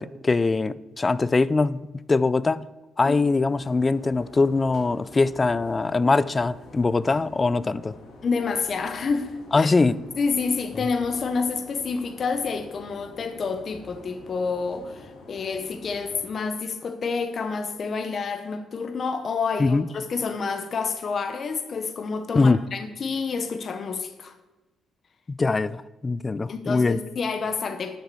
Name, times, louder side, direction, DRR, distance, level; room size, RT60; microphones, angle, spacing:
voice 1, 0.0-2.7 3.0-8.0 9.5-10.0 19.6-19.9 22.3-22.6 25.3-27.0, left 3 dB, 25° left, 0.4 m, -22 dB
sound 1, 3.4-16.2, left 2 dB, 75° left, 2.4 m, -47 dB
voice 2, 8.2-9.3 9.5-9.7 10.2-24.3 26.5-28.0, left 5 dB, 50° left, 0.9 m, -28 dB
11.0 x 6.8 x 4.7 m
cardioid pair, 90°, 0 cm